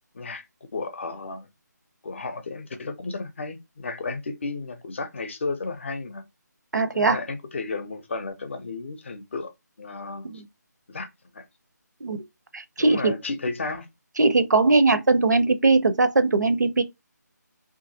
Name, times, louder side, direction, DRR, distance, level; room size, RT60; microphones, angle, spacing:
voice 1, 0.1-0.5 0.7-1.5 2.0-6.3 6.9-9.5 9.8-10.4 10.9-11.4 12.8-13.9, left 3 dB, 40° left, 0.6 m, -33 dB
voice 2, 6.7-7.2 10.3-10.4 12.0-12.2 12.5-13.1 14.2-16.8, right 3 dB, 70° right, 0.6 m, -20 dB
2.8 x 2.6 x 2.6 m
figure-of-eight pair, 155°, 10 cm